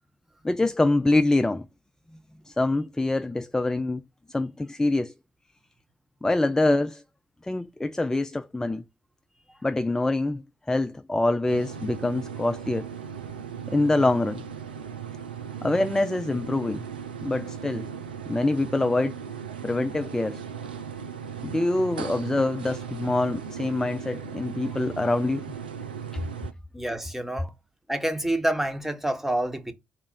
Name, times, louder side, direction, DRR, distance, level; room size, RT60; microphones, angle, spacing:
voice 1, 0.4-1.7 2.5-4.0 4.3-5.1 6.2-7.0 7.4-8.8 9.6-10.4 10.7-12.9 13.7-14.4 15.6-16.8 17.2-17.9 18.3-19.2 19.6-20.4 21.4-25.5 26.1-26.2, left 2 dB, 10° left, 0.3 m, -25 dB
sound 1, 11.5-26.5, right 7 dB, 85° right, 0.3 m, -37 dB
voice 2, 26.7-27.5 27.9-29.7, right 1 dB, 5° right, 1.1 m, -27 dB
4.1 x 2.4 x 4.4 m
figure-of-eight pair, 40°, 5 cm